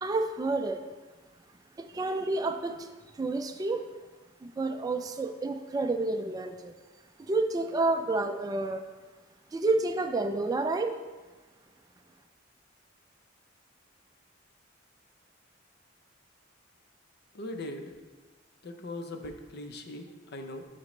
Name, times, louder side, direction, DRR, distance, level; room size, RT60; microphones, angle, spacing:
voice 1, 0.0-0.8 1.8-2.9 3.1-3.8 4.4-6.8 7.2-8.8 9.5-11.0, right 2 dB, 20° right, 6 dB, 0.3 m, -29 dB
voice 2, 17.3-17.9 18.6-20.6, left 1 dB, 55° left, 6 dB, 0.6 m, -40 dB
9.9 x 4.2 x 3.1 m, 1.3 s
head